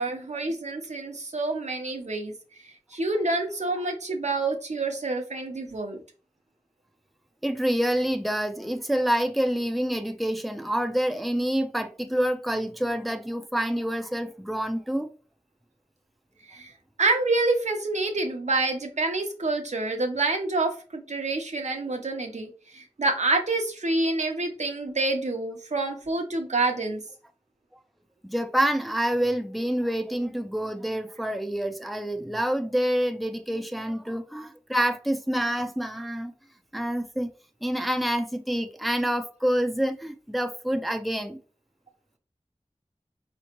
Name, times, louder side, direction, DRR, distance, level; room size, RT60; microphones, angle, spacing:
voice 1, 0.0-2.3 2.9-6.0 16.5-16.7 17.0-27.0, right 2 dB, 85° right, 0.8 m, -27 dB
voice 2, 7.4-15.1 28.2-36.3 36.7-37.3 37.6-41.4, equal, ahead, 0.5 m, -27 dB
4.2 x 3.0 x 2.9 m
wide cardioid pair, 40°, 12 cm